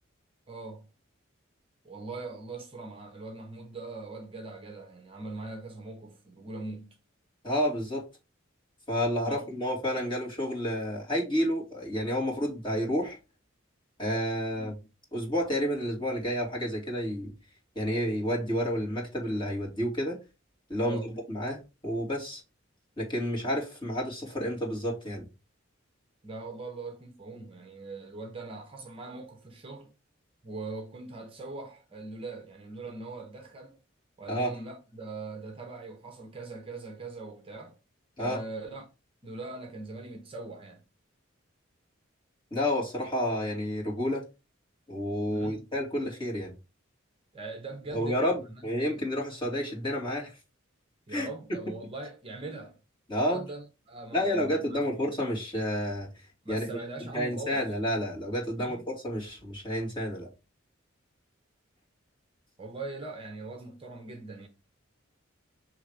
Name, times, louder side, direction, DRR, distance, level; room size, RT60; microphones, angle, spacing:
voice 1, 0.5-0.9 1.8-7.0 9.2-9.5 14.5-14.7 20.8-21.1 26.2-29.9 30.4-33.8 34.2-37.8 38.2-38.9 39.2-40.8 45.3-45.6 47.3-49.0 51.1-52.8 53.1-54.8 56.4-57.6 58.6-58.9 62.6-64.5, right 3 dB, 25° right, 0.7 m, -41 dB
voice 2, 7.4-8.0 8.9-13.2 14.0-14.7 15.1-17.3 17.7-20.2 20.7-22.4 23.0-25.2 34.3-34.5 38.2-38.4 42.5-44.2 44.9-46.5 47.9-50.4 51.1-51.3 53.1-53.4 54.1-56.7 57.1-60.3, equal, 25° left, 2.5 m, -30 dB
6.4 x 3.2 x 4.8 m
head